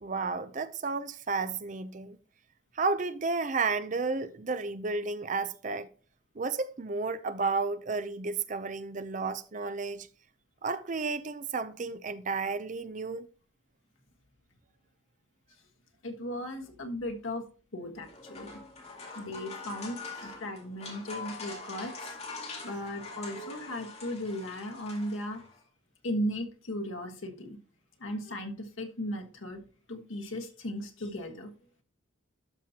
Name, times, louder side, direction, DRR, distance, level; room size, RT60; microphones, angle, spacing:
voice 1, 0.0-2.2 2.8-5.9 6.4-10.1 10.6-13.3, right 4 dB, 40° right, 0.5 m, -32 dB
voice 2, 16.0-17.4 17.7-18.5 19.1-22.1 22.6-25.4 26.0-27.6 28.0-29.6 29.9-31.5, equal, 85° left, 1.5 m, -36 dB
sound 1, 17.9-25.6, left 3 dB, 30° left, 2.3 m, -43 dB
12.5 x 5.7 x 2.8 m
head